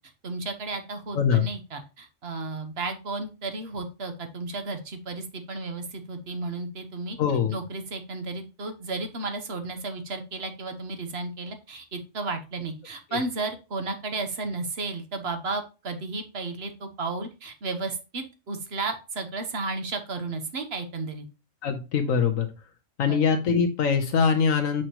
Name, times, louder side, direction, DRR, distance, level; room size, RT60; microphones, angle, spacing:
voice 1, 0.2-7.2 7.5-21.2 23.0-23.2, right 3 dB, 55° right, 7 dB, 1.3 m, -33 dB
voice 2, 1.1-1.5 7.2-7.5 13.1-13.2 21.6-22.5 23.0-24.8, left 6 dB, 85° left, 4 dB, 1.4 m, -23 dB
6.4 x 6.0 x 2.9 m, 0.30 s
omnidirectional pair, 1.3 m